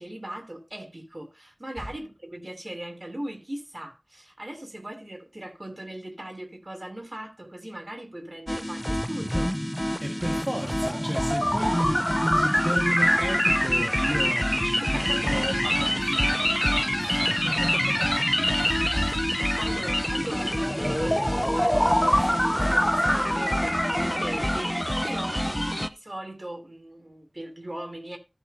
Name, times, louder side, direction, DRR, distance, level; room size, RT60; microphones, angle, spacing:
voice 1, 0.0-9.5 14.8-15.4 19.6-28.2, right 1 dB, 45° right, 3.0 m, -39 dB
sound 1, 8.5-25.9, equal, 10° left, 0.7 m, -25 dB
voice 2, 10.0-18.1 18.4-19.9, equal, 25° right, 1.8 m, -33 dB
14.0 x 6.4 x 2.8 m
wide cardioid pair, 40°, 0 cm